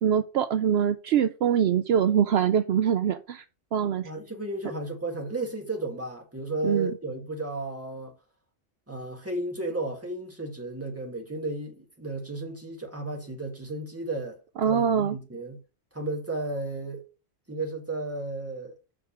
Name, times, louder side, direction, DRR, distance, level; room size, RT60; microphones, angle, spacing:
voice 1, 0.0-3.4 3.7-4.1 6.6-6.9 14.6-15.2, right 8 dB, 70° right, 0.8 m, -23 dB
voice 2, 4.0-8.1 8.9-14.4 14.6-15.6 15.9-17.0 17.5-18.8, right 2 dB, 15° right, 1.8 m, -33 dB
6.2 x 4.9 x 5.7 m
omnidirectional pair, 1.1 m